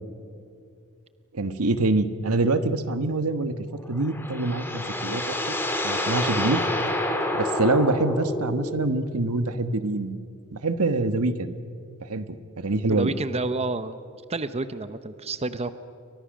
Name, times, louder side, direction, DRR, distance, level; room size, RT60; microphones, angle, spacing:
voice 1, 1.3-3.5 3.9-5.5 5.8-6.6 7.3-10.2 10.5-11.5 12.0-13.1, right 2 dB, 80° right, 10 dB, 1.3 m, -25 dB
sound 1, 3.8-9.0, left 1 dB, 10° left, 2.5 m, -28 dB
voice 2, 12.9-14.0 14.3-15.7, right 3 dB, 30° right, 12 dB, 0.7 m, -29 dB
29.5 x 23.5 x 6.5 m, 2.4 s
head